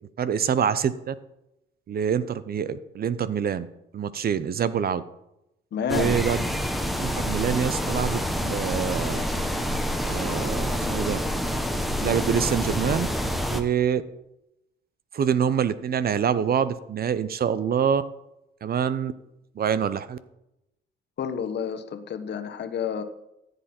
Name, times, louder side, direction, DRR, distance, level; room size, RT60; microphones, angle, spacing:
voice 1, 0.2-1.1 1.9-3.7 3.9-5.0 5.9-6.4 7.0-9.2 10.1-11.2 12.0-13.1 13.5-14.0 15.1-18.0 18.6-19.1 19.6-20.2, right 8 dB, 50° right, 15 dB, 0.7 m, -25 dB
voice 2, 5.7-6.2 21.2-23.0, left 7 dB, 60° left, 8 dB, 1.2 m, -30 dB
sound 1, 5.9-13.6, equal, ahead, 1.2 m, -27 dB
14.0 x 8.0 x 4.4 m, 0.87 s
cardioid pair, 90°, 20 cm